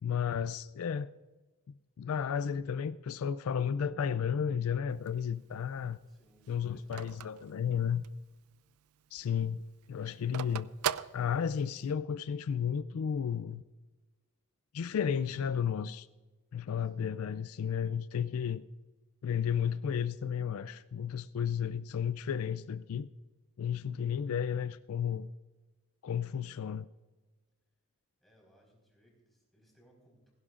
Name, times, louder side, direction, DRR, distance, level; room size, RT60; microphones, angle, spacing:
voice 1, 0.0-1.1 2.0-6.0 6.5-8.0 9.1-9.6 9.9-10.7 11.1-13.6 14.7-16.1 16.5-18.6 19.2-23.1 23.6-25.3 26.0-26.9, left 7 dB, 70° left, 0.4 m, -33 dB
Telephone, 4.9-8.3 8.7-8.8 9.0-11.9, right 9 dB, 75° right, 0.4 m, -39 dB
voice 2, 6.1-7.8 16.8-16.9 28.2-30.3, equal, ahead, 4.4 m, -66 dB
16.5 x 16.0 x 2.5 m
head